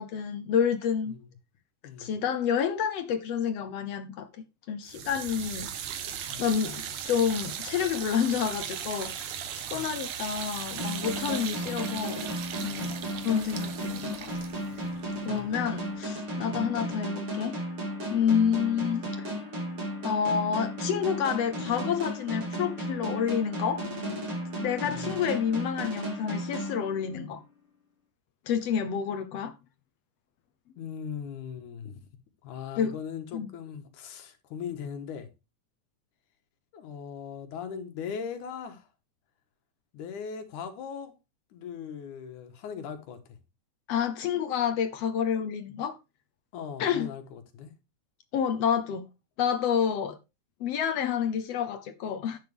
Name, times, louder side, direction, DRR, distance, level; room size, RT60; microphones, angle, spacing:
voice 1, 0.0-1.1 2.0-5.7 6.4-9.1 9.5-12.3 12.6-13.0 13.2-14.3 15.2-17.6 18.1-19.3 20.0-23.8 24.6-27.4 28.5-29.5 32.8-32.9 33.3-33.5 43.9-46.0 46.8-47.1 48.3-49.1 49.4-50.2 50.6-52.4, left 8 dB, 70° left, 1.7 m, -29 dB
voice 2, 1.8-2.1 6.3-6.4 9.7-9.9 15.2-15.5 16.5-16.6 24.8-25.2 30.8-32.0 32.4-35.3 36.7-38.9 39.9-41.1 41.5-43.2 46.5-47.7, left 7 dB, 90° left, 2.9 m, -39 dB
sound 1, 4.9-15.9, right 9 dB, 85° right, 2.7 m, -38 dB
sound 2, 10.8-27.4, equal, 45° right, 3.9 m, -35 dB
11.0 x 7.8 x 3.5 m
omnidirectional pair, 3.4 m